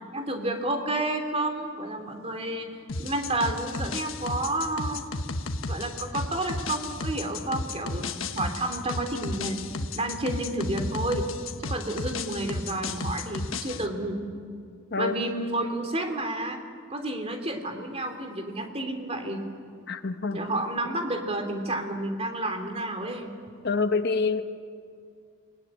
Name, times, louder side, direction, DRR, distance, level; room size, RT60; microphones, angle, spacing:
voice 1, 0.1-5.0 5.7-9.6 9.9-11.3 11.6-14.2 14.9-16.6 16.9-19.4 20.3-23.3, right 1 dB, 30° right, 5 dB, 2.9 m, -30 dB
sound 1, 2.9-13.9, left 2 dB, 75° left, 1.4 m, -33 dB
voice 2, 19.9-20.4 23.6-24.4, left 4 dB, 50° left, 9 dB, 1.0 m, -26 dB
28.5 x 20.5 x 9.9 m, 2.2 s
head